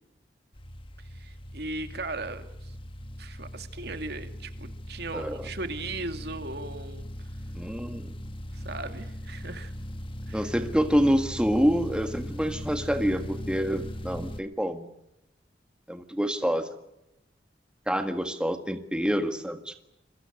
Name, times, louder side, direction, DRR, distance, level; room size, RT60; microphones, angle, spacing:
sound 1, 0.5-14.4, equal, 30° left, 1.5 m, -39 dB
voice 1, 1.1-2.7 3.2-7.3 8.5-9.7 10.3-10.5, right 2 dB, 65° right, 7 dB, 2.6 m, -38 dB
voice 2, 7.5-8.1 10.3-14.9 15.9-16.7 17.9-19.8, equal, 5° right, 7 dB, 1.7 m, -27 dB
28.5 x 23.5 x 6.5 m, 0.85 s
head